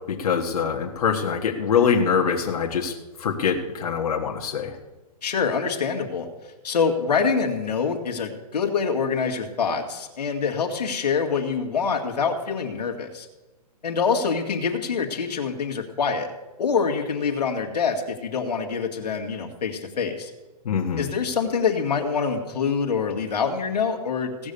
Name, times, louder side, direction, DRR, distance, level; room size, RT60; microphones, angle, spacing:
voice 1, 0.1-2.9 3.2-4.7 20.7-21.1, left 6 dB, 65° left, 0 dB, 1.7 m, -24 dB
voice 2, 5.2-6.3 6.6-13.3 13.8-16.3 16.6-20.3 21.0-24.5, left 5 dB, 85° left, 2 dB, 2.0 m, -25 dB
17.0 x 6.4 x 6.9 m, 1.1 s
hypercardioid pair, 155°, 20 cm